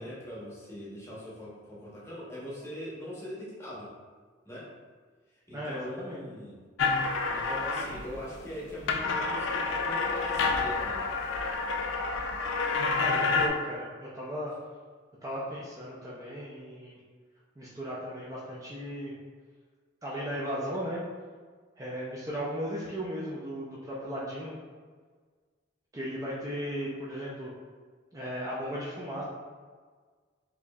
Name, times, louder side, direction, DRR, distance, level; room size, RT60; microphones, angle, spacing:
voice 1, 0.0-3.9 4.4-4.7 5.3-6.6 7.3-11.1, equal, 15° left, -7 dB, 0.8 m, -41 dB
voice 2, 5.5-6.2 12.9-14.5 15.2-17.0 17.6-19.1 20.0-21.0 21.8-24.5 25.9-27.5 28.1-29.2, equal, 15° right, -7 dB, 0.4 m, -36 dB
sound 1, 6.8-8.2 8.6-13.5, left 4 dB, 75° left, 0.4 m, -29 dB
4.8 x 2.7 x 2.3 m, 1.5 s
head